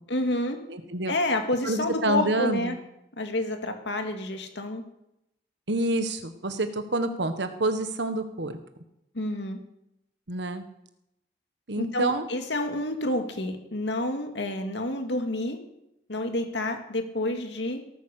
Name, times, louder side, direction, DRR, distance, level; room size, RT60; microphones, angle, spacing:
voice 1, 0.1-0.6 1.1-2.8 3.2-4.8 9.1-9.6 11.8-15.6 16.1-17.8, left 1 dB, 80° left, 5 dB, 2.2 m, -29 dB
voice 2, 0.7-1.1 1.6-2.8 5.7-8.5 10.3-10.6 11.7-12.3, right 2 dB, 75° right, 9 dB, 1.4 m, -28 dB
17.5 x 9.3 x 6.6 m, 0.83 s
head